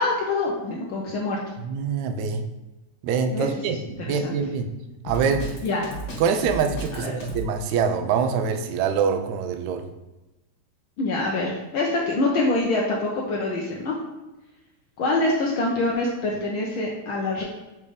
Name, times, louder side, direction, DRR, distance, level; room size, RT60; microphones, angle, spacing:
voice 1, 0.0-1.4 3.3-3.5 4.0-4.3 5.6-5.9 6.9-7.1 11.0-14.0 15.0-17.4, left 2 dB, 80° left, -2 dB, 1.1 m, -25 dB
voice 2, 1.6-2.4 3.0-4.7 5.0-5.6 6.2-9.9, right 6 dB, 80° right, 7 dB, 1.9 m, -25 dB
Drum kit, 5.1-7.5, right 1 dB, 60° left, 2.3 m, -33 dB
6.7 x 3.5 x 5.0 m, 1.0 s
omnidirectional pair, 3.4 m